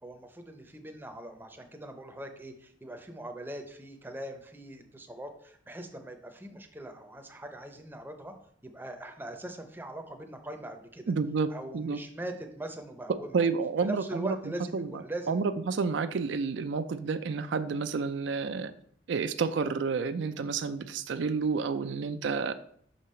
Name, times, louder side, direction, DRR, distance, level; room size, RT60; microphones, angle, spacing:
voice 1, 0.0-8.3 8.6-11.1 11.5-13.5 13.8-15.4, right 1 dB, 10° right, 5 dB, 0.6 m, -41 dB
voice 2, 11.1-12.0 13.3-14.4 14.7-18.7 19.1-22.5, right 5 dB, 70° right, 11 dB, 0.4 m, -30 dB
5.7 x 5.4 x 4.3 m, 0.64 s
head